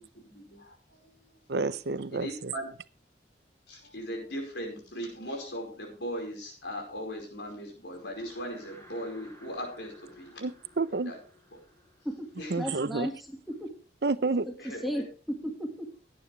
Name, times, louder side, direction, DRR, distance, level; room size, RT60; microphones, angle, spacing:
voice 1, 0.3-1.4 2.1-2.7 3.7-10.4 11.0-11.2 12.4-12.5 14.6-14.8, equal, 85° left, 4.9 m, -38 dB
voice 2, 1.5-2.5 10.4-11.1 12.5-13.1 14.0-14.5, right 3 dB, 70° right, 0.6 m, -29 dB
sound 1, 7.8-13.3, left 1 dB, 15° left, 5.0 m, -55 dB
voice 3, 12.6-13.7 14.5-14.6 14.8-15.9, equal, ahead, 1.8 m, -35 dB
17.0 x 9.4 x 3.4 m
head